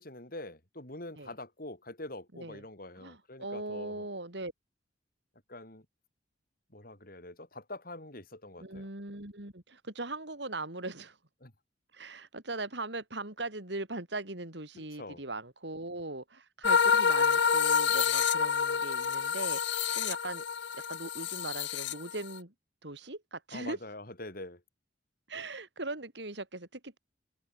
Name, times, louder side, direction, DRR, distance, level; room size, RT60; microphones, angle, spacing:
voice 1, 0.0-4.1 5.5-5.9 6.7-8.9 11.4-11.5 14.7-15.2 23.5-24.6, left 2 dB, 50° left, 5.6 m, -45 dB
voice 2, 3.0-4.5 8.6-11.2 11.9-20.4 20.7-22.5 22.8-23.8 25.3-27.0, right 2 dB, 65° right, 3.3 m, -40 dB
sound 1, 16.6-22.4, left 6 dB, 70° left, 0.8 m, -28 dB
open air
head